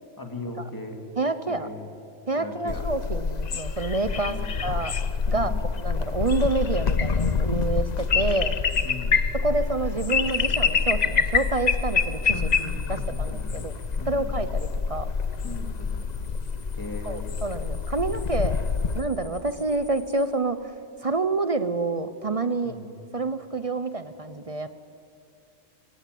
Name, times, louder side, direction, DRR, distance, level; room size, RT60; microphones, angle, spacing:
voice 1, 0.2-1.0 1.5-1.9 2.4-2.8 4.3-4.5 5.3-5.7 8.8-9.2 12.3-13.7 14.0-14.4 15.4-16.3 16.8-17.4 22.6-22.9, left 2 dB, 15° left, 3 dB, 2.4 m, -38 dB
voice 2, 1.2-1.7 2.3-4.4 4.6-4.9 5.3-5.5 5.8-8.6 9.4-12.4 12.9-13.7 14.1-15.1 17.1-18.6 18.9-20.7 21.0-22.8 23.1-24.7, right 3 dB, 35° right, 11 dB, 0.8 m, -28 dB
sound 1, 2.7-19.0, left 5 dB, 45° left, 0.8 m, -26 dB
sound 2, 10.2-14.0 15.2-20.2, left 4 dB, 80° left, 3.8 m, -51 dB
22.0 x 17.5 x 9.3 m, 2.4 s
omnidirectional pair, 1.2 m